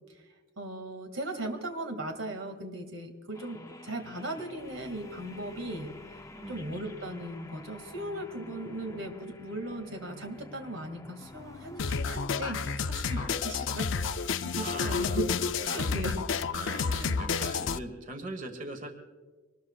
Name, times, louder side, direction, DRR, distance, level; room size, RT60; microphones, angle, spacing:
voice 1, 0.6-5.9 6.5-13.9 14.2-15.3 15.6-16.2 16.9-17.1, right 1 dB, 90° right, 4 dB, 2.3 m, -38 dB
sound 1, 3.3-12.2, left 2 dB, 15° left, 0.6 m, -49 dB
voice 2, 6.3-6.8 13.1-13.4 13.7-13.9 14.5-16.0 16.5-18.9, right 2 dB, 40° right, 6 dB, 1.4 m, -42 dB
sound 2, 11.8-17.8, left 5 dB, 70° left, 0.6 m, -30 dB
25.0 x 20.0 x 2.4 m, 1.4 s
head